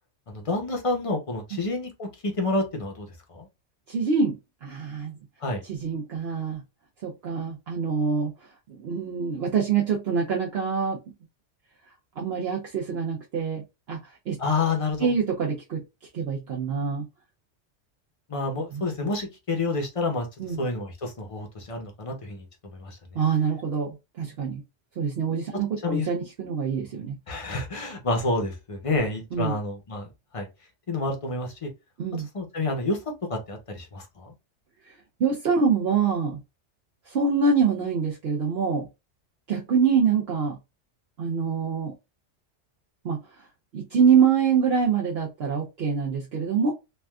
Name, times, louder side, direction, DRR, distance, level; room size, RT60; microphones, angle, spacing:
voice 1, 0.3-3.5 5.4-5.6 14.4-15.1 18.3-20.3 20.6-22.4 22.7-23.0 25.8-26.1 27.3-30.1 30.3-30.5 30.9-31.7 32.3-33.0 33.3-34.3, left 3 dB, 35° left, 0.7 m, -29 dB
voice 2, 3.9-4.4 4.6-5.1 5.6-6.6 7.0-8.3 8.7-11.0 12.2-13.6 13.9-14.0 14.3-14.4 15.0-15.8 16.1-17.0 18.7-18.8 20.4-20.6 23.1-24.6 25.0-27.1 29.3-29.6 32.0-32.3 34.9-35.0 35.2-36.4 37.1-38.9 39.5-40.6 41.2-41.9 43.0-43.2 43.7-46.7, right 6 dB, 60° right, 0.9 m, -25 dB
3.3 x 2.4 x 2.2 m
omnidirectional pair, 1.2 m